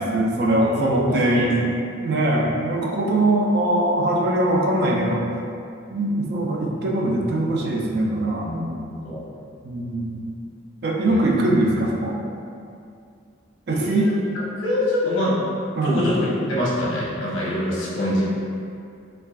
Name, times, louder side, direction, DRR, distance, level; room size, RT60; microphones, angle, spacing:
voice 1, 0.0-1.7 2.0-5.3 5.9-8.5 9.6-10.4 10.8-12.2 13.7-14.1 15.8-16.0, right 1 dB, 55° right, -2 dB, 0.4 m, -21 dB
voice 2, 0.5-1.6 8.4-9.2 11.1-11.3 13.7-15.4 15.8-18.2, left 1 dB, 70° left, -7 dB, 1.0 m, -25 dB
4.5 x 2.4 x 2.3 m, 2.4 s
head